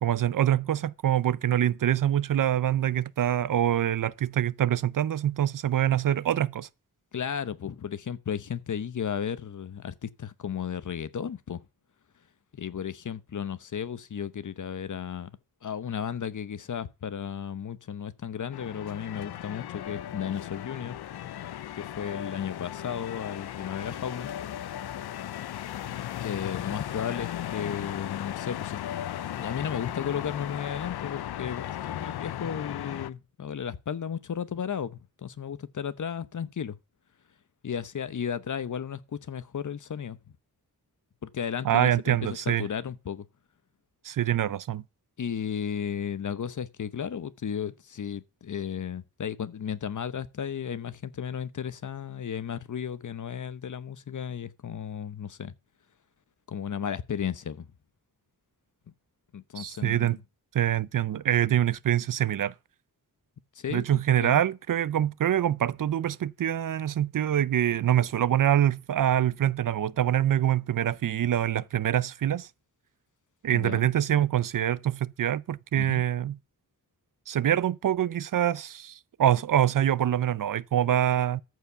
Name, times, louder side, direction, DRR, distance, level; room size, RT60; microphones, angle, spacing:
voice 1, 0.0-6.7 41.6-42.7 44.0-44.8 59.6-60.2 60.5-62.5 63.7-72.5 73.4-76.4 77.3-81.4, right 11 dB, 55° right, 0.5 m, -25 dB
voice 2, 7.1-11.7 12.5-15.3 15.6-21.0 21.8-24.3 25.8-25.9 26.2-28.8 29.3-36.8 37.6-40.2 41.2-43.3 45.2-55.5 56.5-57.7 59.3-60.2 63.5-64.4 73.5-73.9 75.8-76.0, left 8 dB, 50° left, 0.9 m, -34 dB
sound 1, 18.5-33.1, left 11 dB, 80° left, 0.6 m, -36 dB
14.0 x 4.8 x 6.7 m
wide cardioid pair, 100°, 38 cm